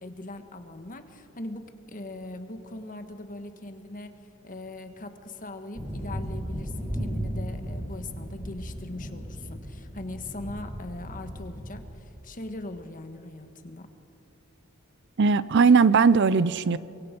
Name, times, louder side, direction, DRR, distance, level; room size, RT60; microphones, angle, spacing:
voice 1, 0.0-4.1 4.4-13.9, left 2 dB, 40° left, 8 dB, 1.4 m, -40 dB
sound 1, 5.7-11.8, equal, 15° right, 4.0 m, -35 dB
voice 2, 15.2-16.8, right 5 dB, 55° right, 17 dB, 0.5 m, -19 dB
24.0 x 23.0 x 5.2 m, 2.6 s
head